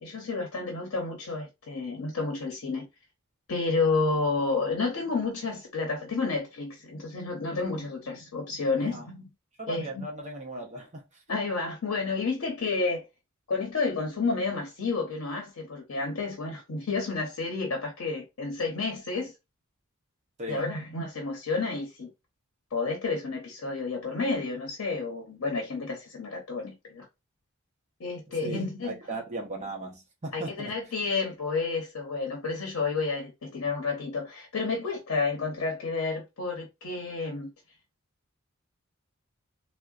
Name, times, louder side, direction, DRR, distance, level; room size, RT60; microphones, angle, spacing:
voice 1, 0.0-2.9 3.5-9.3 9.7-10.1 11.3-13.1 13.5-19.3 20.5-22.1 22.7-27.1 28.0-29.0 30.3-37.5, left 4 dB, 70° left, 0.8 m, -30 dB
voice 2, 9.6-11.2 20.4-20.7 28.3-30.7, right 2 dB, 35° right, 0.7 m, -38 dB
3.7 x 2.1 x 2.3 m
head